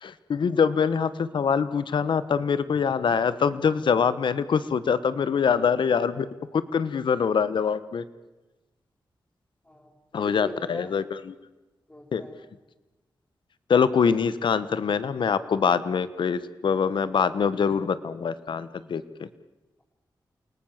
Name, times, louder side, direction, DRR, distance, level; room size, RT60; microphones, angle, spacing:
voice 1, 0.0-6.3 6.5-8.0 10.1-11.3 12.1-12.2 13.7-19.0, left 6 dB, 80° left, 15 dB, 1.2 m, -24 dB
voice 2, 9.6-10.9 11.9-12.4, left 1 dB, 20° left, -4 dB, 5.1 m, -42 dB
29.0 x 19.0 x 7.4 m, 1.1 s
cardioid pair, 60°, 8 cm